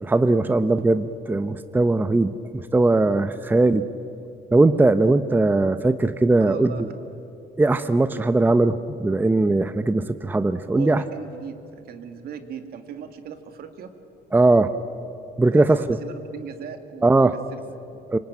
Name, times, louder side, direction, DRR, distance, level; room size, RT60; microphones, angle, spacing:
voice 1, 0.0-3.9 4.5-6.9 7.6-11.0 14.3-14.7 15.4-16.0 17.0-17.4 18.1-18.2, right 2 dB, 10° right, 11 dB, 0.7 m, -19 dB
voice 2, 6.4-7.0 10.7-13.9 15.5-15.7 16.0-17.2 17.5-18.0, right 8 dB, 65° right, 8 dB, 2.3 m, -38 dB
26.0 x 24.0 x 9.1 m, 2.8 s
cardioid pair, 110°, 17 cm